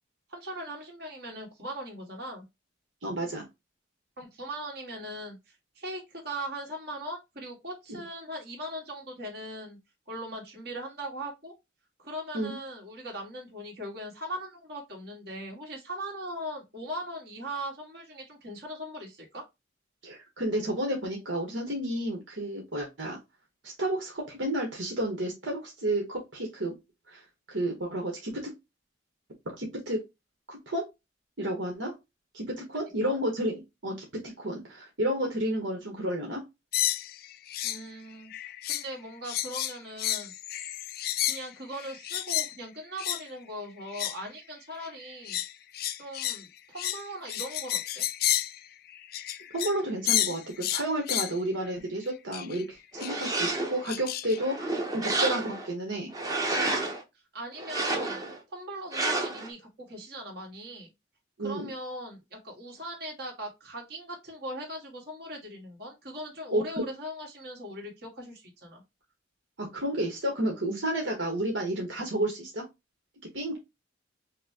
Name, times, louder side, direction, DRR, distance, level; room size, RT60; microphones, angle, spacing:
voice 1, 0.3-2.4 4.2-9.8 10.1-11.5 12.0-19.4 33.0-33.2 37.6-40.3 41.3-45.4 46.0-48.0 57.3-58.2 58.5-60.9 61.4-68.8, right 1 dB, 55° right, 1.8 m, -40 dB
voice 2, 3.0-3.4 12.3-12.5 20.0-23.2 23.6-26.7 27.1-27.2 27.5-28.5 29.6-30.0 30.5-30.8 31.4-31.9 32.3-34.1 34.4-36.4 49.5-56.1 61.4-61.7 66.5-66.6 69.6-72.6 73.3-73.6, right 1 dB, 75° right, 1.3 m, -31 dB
sound 1, 36.7-37.8 38.1-38.9 39.2-42.5 43.0-43.2 43.8-44.3 44.8-49.8 50.1-51.4 52.3-52.6 53.0-53.3 53.9-54.4, left 12 dB, 50° left, 0.4 m, -31 dB
sound 2, 52.9-53.9 54.4-55.7 56.1-57.0 57.6-58.4 58.9-59.5, right 2 dB, 20° right, 0.9 m, -30 dB
5.7 x 2.2 x 2.8 m
head